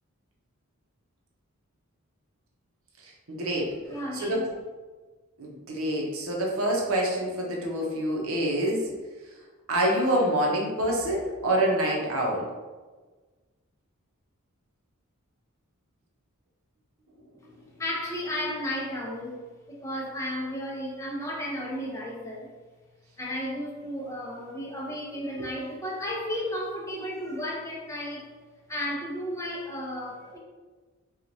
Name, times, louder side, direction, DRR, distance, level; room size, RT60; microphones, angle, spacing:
voice 1, 3.3-3.7 4.1-4.4 5.4-8.9 9.7-12.5, right 1 dB, 70° right, -1 dB, 0.8 m, -26 dB
voice 2, 3.9-4.5 17.8-22.5 23.2-28.3 28.7-30.4, equal, 15° left, -4 dB, 0.7 m, -33 dB
4.4 x 2.4 x 2.6 m, 1.3 s
head